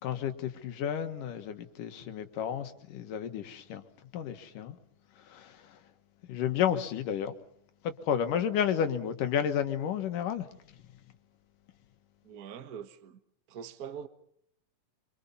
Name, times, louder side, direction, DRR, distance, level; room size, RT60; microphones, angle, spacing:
voice 1, 0.0-3.8 4.1-4.8 5.3-5.8 6.2-7.3 7.8-10.5, left 9 dB, 80° left, 3.1 m, -31 dB
voice 2, 12.2-13.2 13.5-14.1, right 8 dB, 55° right, 1.0 m, -43 dB
26.0 x 25.0 x 5.6 m
omnidirectional pair, 3.7 m